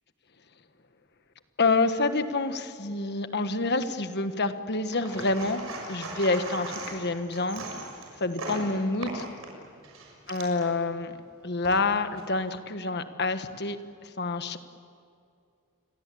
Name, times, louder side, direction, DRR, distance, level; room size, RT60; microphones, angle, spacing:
voice 1, 1.6-5.6 5.9-7.6 8.2-9.2 10.3-11.1 11.4-13.8 14.2-14.6, left 3 dB, 50° left, 9 dB, 1.4 m, -27 dB
sound 1, 4.9-10.7 11.4-12.3, right 2 dB, 65° right, 6.8 m, -38 dB
28.5 x 22.5 x 8.6 m, 2.4 s
head